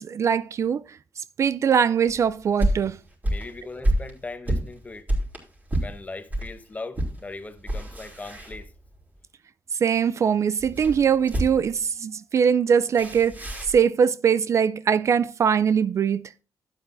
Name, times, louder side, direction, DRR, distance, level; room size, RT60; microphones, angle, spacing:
voice 1, 0.0-3.0 9.8-16.2, right 7 dB, 50° right, 0.3 m, -22 dB
sound 1, 2.1-6.5 6.9-7.2 7.5-9.0 10.6-11.8 13.0-13.8, right 1 dB, 25° right, 3.5 m, -28 dB
voice 2, 3.2-5.1 5.8-8.7, left 3 dB, 20° left, 0.9 m, -39 dB
12.0 x 8.9 x 2.5 m
cardioid pair, 105°, 7 cm